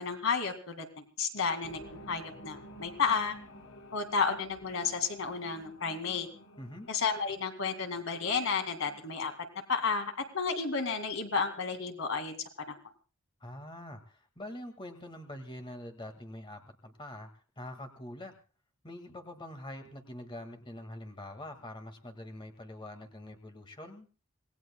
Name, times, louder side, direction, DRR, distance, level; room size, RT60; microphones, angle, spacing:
voice 1, 0.0-1.8 2.1-3.4 3.9-6.3 6.9-9.3 9.7-12.4 12.7-12.8, left 5 dB, 65° left, 6 dB, 2.1 m, -32 dB
sound 1, 1.6-10.5 10.8-10.9, right 1 dB, 85° left, 3.5 m, -53 dB
voice 2, 6.6-6.9 13.4-18.3 18.8-24.1, left 1 dB, 25° left, 6 dB, 1.8 m, -45 dB
26.5 x 18.5 x 2.2 m, 0.35 s
head